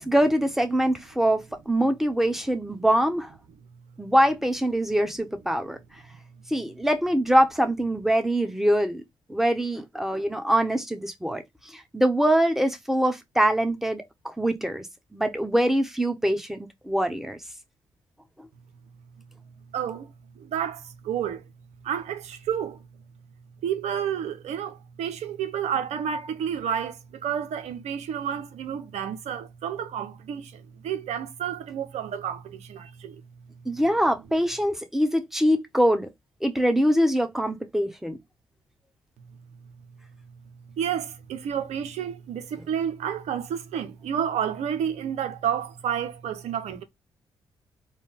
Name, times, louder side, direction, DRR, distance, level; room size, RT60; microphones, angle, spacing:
voice 1, 0.0-3.3 4.0-5.8 6.5-9.0 9.3-11.4 11.7-14.9 15.1-16.6 16.8-17.4 33.6-36.1 36.4-38.2, equal, 5° right, 1.2 m, -23 dB
voice 2, 19.7-20.1 20.4-21.4 21.8-22.8 23.6-33.2 40.8-46.8, right 8 dB, 70° right, 0.8 m, -30 dB
4.1 x 2.3 x 3.5 m
hypercardioid pair, 45°, 12 cm